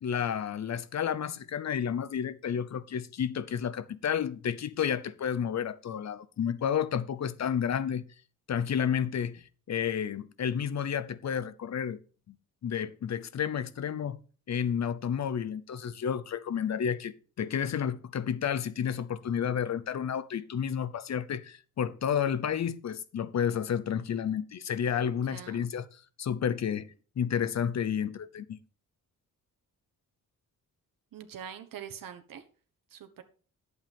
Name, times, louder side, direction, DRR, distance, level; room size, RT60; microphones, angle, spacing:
voice 1, 0.0-8.0 8.5-12.0 12.3-12.4 12.6-14.2 14.5-25.9 26.2-28.6, left 8 dB, 55° left, 0.8 m, -31 dB
voice 2, 25.0-25.6 31.1-32.4 32.9-33.2, right 8 dB, 80° right, 1.3 m, -44 dB
11.5 x 8.0 x 3.6 m
wide cardioid pair, 145°, 33 cm